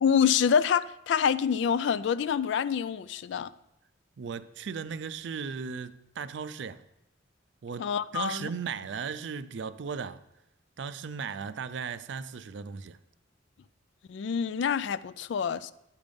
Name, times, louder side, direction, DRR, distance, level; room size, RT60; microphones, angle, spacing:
voice 1, 0.0-3.5 7.8-8.5 14.1-15.7, left 7 dB, 65° left, 0.3 m, -26 dB
voice 2, 4.2-6.8 7.6-10.2 10.8-13.0, right 6 dB, 65° right, 0.4 m, -36 dB
9.9 x 5.3 x 5.2 m
head